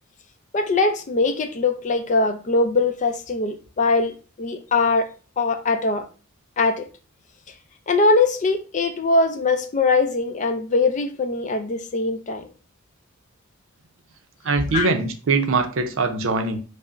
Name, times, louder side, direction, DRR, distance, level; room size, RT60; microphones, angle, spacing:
voice 1, 0.5-5.1 5.4-6.0 6.6-6.9 7.9-12.5 14.7-14.9, left 3 dB, 35° left, 0.4 m, -21 dB
voice 2, 14.4-16.6, right 3 dB, 65° right, 0.5 m, -22 dB
5.2 x 2.0 x 2.4 m
head